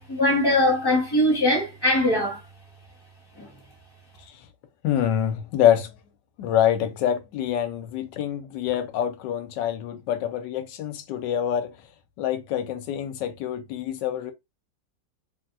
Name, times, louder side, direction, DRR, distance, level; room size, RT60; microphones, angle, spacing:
voice 1, 0.0-2.4 3.4-3.5, left 1 dB, 15° left, 0.9 m, -21 dB
voice 2, 4.8-5.9 6.4-11.8 12.2-14.3, left 10 dB, 75° left, 1.1 m, -25 dB
3.3 x 2.7 x 2.4 m
omnidirectional pair, 2.1 m